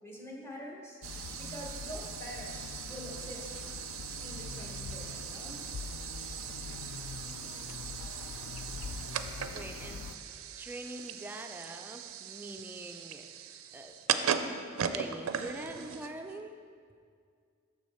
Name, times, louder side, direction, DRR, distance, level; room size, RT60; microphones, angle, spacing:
voice 1, 0.0-3.5 4.2-5.6, equal, 15° left, -3 dB, 1.1 m, -46 dB
sound 1, 1.0-10.2, left 5 dB, 70° left, 0.3 m, -44 dB
sound 2, 1.0-16.4, right 8 dB, 90° right, 0.4 m, -39 dB
voice 2, 9.5-10.0 10.6-13.3 13.7-13.9 14.4-16.5, right 1 dB, 10° right, 4 dB, 0.3 m, -44 dB
6.3 x 6.2 x 4.3 m, 2.2 s
head